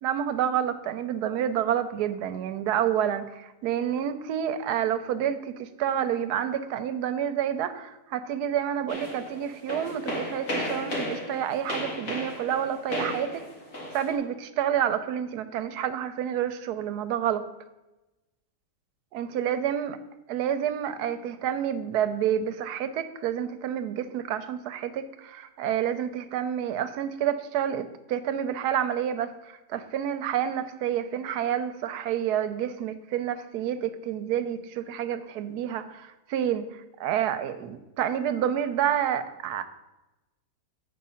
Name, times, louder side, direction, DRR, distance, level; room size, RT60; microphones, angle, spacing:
voice 1, 0.0-13.4 13.9-17.4 19.1-20.0 20.3-39.6, right 9 dB, 80° right, 10 dB, 1.1 m, -29 dB
sound 1, 8.9-14.2, left 1 dB, 55° left, 2.4 m, -34 dB
8.4 x 5.0 x 5.6 m, 1.0 s
omnidirectional pair, 1.7 m